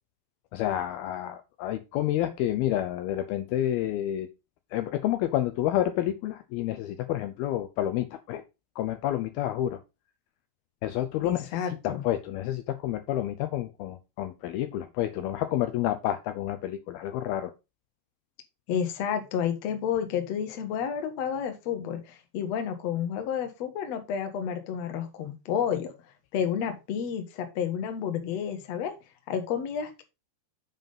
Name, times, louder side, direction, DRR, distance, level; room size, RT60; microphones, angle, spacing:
voice 1, 0.5-4.3 4.7-8.4 8.8-9.8 10.8-17.5, left 13 dB, 90° left, 9 dB, 2.1 m, -29 dB
voice 2, 11.2-12.0 18.7-25.9 26.3-28.9 29.3-30.0, left 8 dB, 70° left, 6 dB, 1.6 m, -30 dB
7.4 x 5.4 x 5.4 m, 0.27 s
omnidirectional pair, 5.2 m